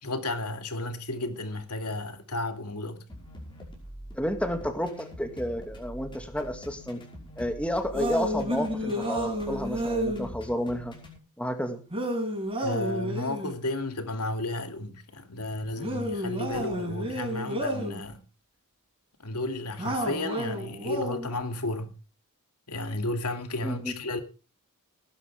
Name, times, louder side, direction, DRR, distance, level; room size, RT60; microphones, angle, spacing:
voice 1, 0.0-3.1 12.6-18.2 19.2-22.0 22.7-24.2, left 2 dB, 90° left, 2.6 m, -33 dB
sound 1, 3.1-11.2, equal, 20° left, 5.5 m, -44 dB
voice 2, 4.1-7.0 7.4-10.9 11.4-11.8 23.6-23.9, equal, 5° left, 2.2 m, -31 dB
sound 2, 7.9-10.3 11.9-13.6 15.8-18.0 19.8-21.3, equal, 25° right, 6.2 m, -31 dB
19.0 x 11.0 x 3.5 m
head